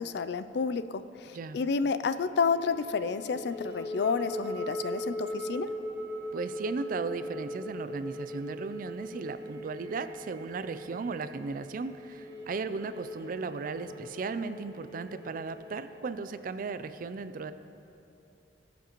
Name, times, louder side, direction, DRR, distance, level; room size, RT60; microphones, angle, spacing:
voice 1, 0.0-5.7, left 5 dB, 65° left, 12 dB, 0.4 m, -30 dB
sound 1, 2.3-16.0, equal, 20° right, 1.6 m, -40 dB
voice 2, 6.3-17.5, right 4 dB, 50° right, 12 dB, 0.4 m, -36 dB
20.5 x 7.1 x 3.0 m, 2.8 s
head